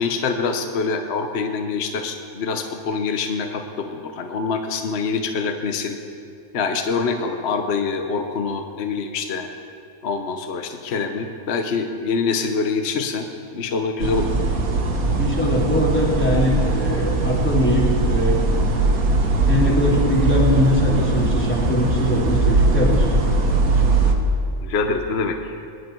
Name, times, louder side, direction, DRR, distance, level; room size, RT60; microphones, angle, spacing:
voice 1, 0.0-6.0 6.5-9.5 10.0-13.3 13.5-14.3 24.6-25.5, left 4 dB, 55° left, 6 dB, 1.1 m, -25 dB
sound 1, 14.0-24.1, right 3 dB, 85° right, 1.8 m, -20 dB
voice 2, 15.2-18.6 19.5-23.0, left 1 dB, 10° left, -4 dB, 3.0 m, -21 dB
22.5 x 11.0 x 4.6 m, 2.5 s
omnidirectional pair, 1.5 m